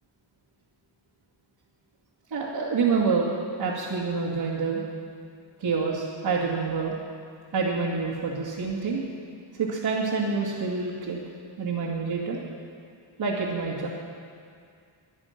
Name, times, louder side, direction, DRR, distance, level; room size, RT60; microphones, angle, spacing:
voice 1, 2.3-3.3 3.6-4.8 5.6-7.0 7.5-9.0 9.6-11.2 11.6-12.4 13.2-13.9, right 4 dB, 65° right, -9 dB, 2.6 m, -27 dB
24.0 x 9.8 x 6.0 m, 2.3 s
wide cardioid pair, 170°, 47 cm